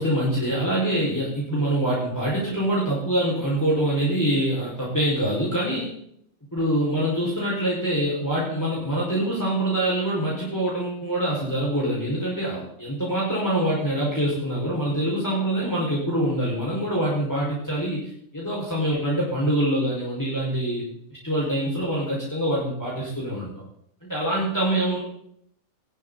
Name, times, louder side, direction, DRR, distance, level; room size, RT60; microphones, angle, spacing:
voice 1, 0.0-5.9 6.5-20.9 21.2-23.5 24.0-25.0, right 1 dB, 15° left, -6 dB, 5.5 m, -25 dB
20.0 x 14.0 x 4.1 m, 0.68 s
omnidirectional pair, 1.4 m